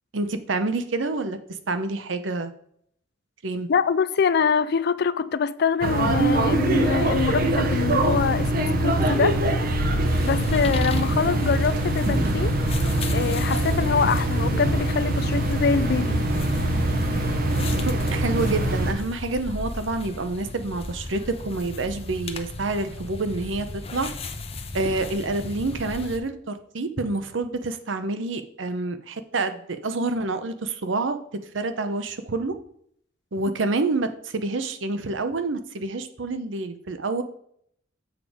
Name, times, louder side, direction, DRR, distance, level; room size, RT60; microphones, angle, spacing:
voice 1, 0.1-1.4 1.7-2.5 3.4-3.7 17.7-23.7 23.9-24.1 24.7-32.6 33.3-37.2, right 3 dB, 80° right, 0.8 m, -28 dB
voice 2, 3.7-9.4 10.1-12.5 13.1-16.2, left 6 dB, 55° left, 0.4 m, -24 dB
sound 1, 5.8-18.9, right 1 dB, 50° right, 0.9 m, -23 dB
sound 2, 10.1-26.2, left 2 dB, 30° left, 0.7 m, -36 dB
7.5 x 5.3 x 4.9 m
head